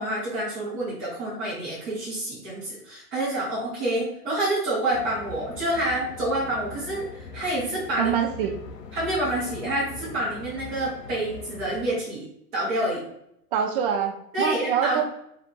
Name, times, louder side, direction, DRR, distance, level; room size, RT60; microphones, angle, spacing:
voice 1, 0.0-8.1 8.9-12.3 12.5-13.0 14.3-15.0, right 1 dB, 10° right, -8 dB, 0.3 m, -28 dB
sound 1, 4.9-12.0, left 4 dB, 85° left, 0.7 m, -41 dB
voice 2, 8.0-8.6 13.5-15.0, right 8 dB, 35° right, 4 dB, 0.7 m, -25 dB
3.8 x 2.5 x 4.3 m, 0.77 s
figure-of-eight pair, 110°, 47 cm